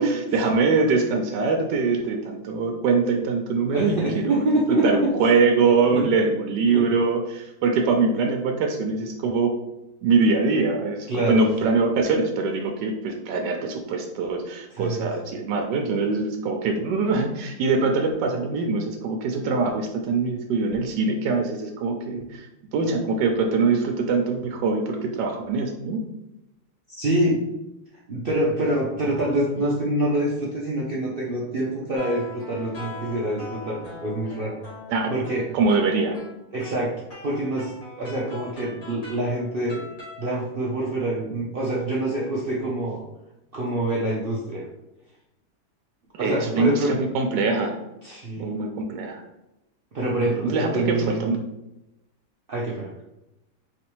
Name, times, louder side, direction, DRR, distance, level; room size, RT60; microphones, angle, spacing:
voice 1, 0.0-9.5 10.0-26.0 34.9-35.1 35.5-36.2 46.2-47.8 48.4-49.2 50.4-51.4, right 4 dB, 90° right, 3 dB, 1.2 m, -23 dB
voice 2, 3.7-5.1 5.8-6.1 6.7-6.8 11.1-11.4 14.7-15.1 27.0-27.4 28.1-34.6 35.1-35.5 36.5-36.9 37.2-39.8 40.2-43.0 43.5-44.7 46.2-46.9 48.0-48.5 49.9-51.3 52.5-52.9, right 1 dB, 65° right, -5 dB, 0.5 m, -26 dB
sound 1, 31.9-40.4, left 2 dB, 55° left, 1.9 m, -41 dB
4.3 x 3.3 x 3.0 m, 0.93 s
omnidirectional pair, 1.8 m